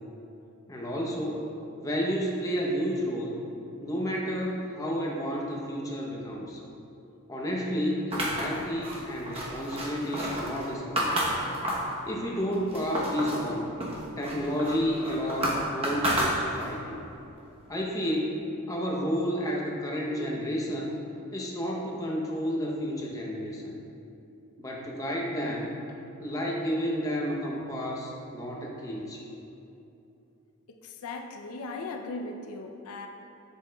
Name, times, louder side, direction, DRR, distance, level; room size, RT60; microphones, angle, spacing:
voice 1, 0.7-1.5 1.8-3.3 3.8-6.6 7.3-11.2 12.1-13.7 14.2-17.0 17.7-20.9 21.3-23.8 24.6-25.7 26.2-29.2, equal, 15° left, -2 dB, 0.7 m, -31 dB
sound 1, 8.1-12.0 12.4-13.5 13.8-16.8, right 1 dB, 25° right, 0.8 m, -30 dB
voice 2, 30.7-33.1, left 3 dB, 80° left, 4 dB, 0.5 m, -38 dB
7.1 x 7.1 x 2.2 m, 2.8 s
head